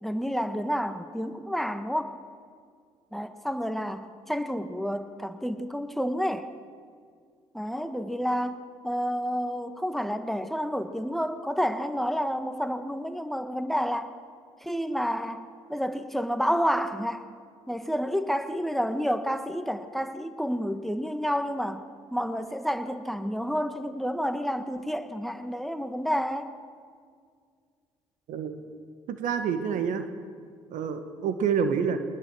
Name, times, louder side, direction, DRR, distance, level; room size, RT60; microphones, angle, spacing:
voice 1, 0.0-2.1 3.1-6.5 7.5-14.1 14.6-15.4 15.7-17.2 17.7-21.8 22.1-26.5, equal, ahead, 9 dB, 1.5 m, -29 dB
voice 2, 29.1-30.1 30.7-32.0, right 7 dB, 65° right, 9 dB, 1.7 m, -27 dB
21.5 x 20.0 x 6.4 m, 2.1 s
hypercardioid pair, 50°, 15 cm